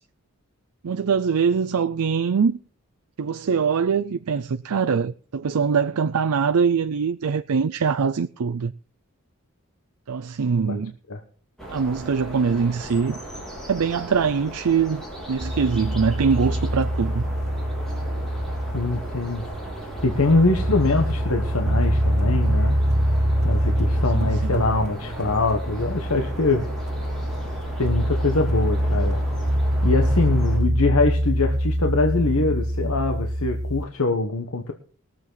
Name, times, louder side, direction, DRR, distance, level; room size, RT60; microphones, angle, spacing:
voice 1, 0.8-2.6 3.2-8.7 10.1-10.9 11.7-13.2 13.7-17.2 24.1-24.7, right 6 dB, 90° right, 0.5 m, -23 dB
sound 1, 11.6-30.6, right 1 dB, ahead, 3.8 m, -37 dB
sound 2, 15.4-33.8, equal, 30° right, 0.6 m, -24 dB
voice 2, 18.7-19.4 20.0-22.8 23.4-26.6 27.8-29.2 29.8-34.7, left 3 dB, 75° left, 1.2 m, -23 dB
21.0 x 7.6 x 3.9 m
head